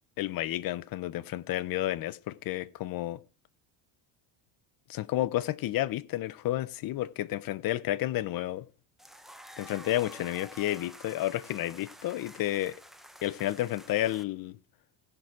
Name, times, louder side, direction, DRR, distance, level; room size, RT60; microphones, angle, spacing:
voice 1, 0.2-3.2 4.9-8.7 9.6-12.8 13.2-14.6, left 14 dB, 50° left, 0.7 m, -31 dB
sound 1, 9.0-14.2, equal, ahead, 0.8 m, -50 dB
16.5 x 6.1 x 4.8 m
cardioid pair, 135°, 46 cm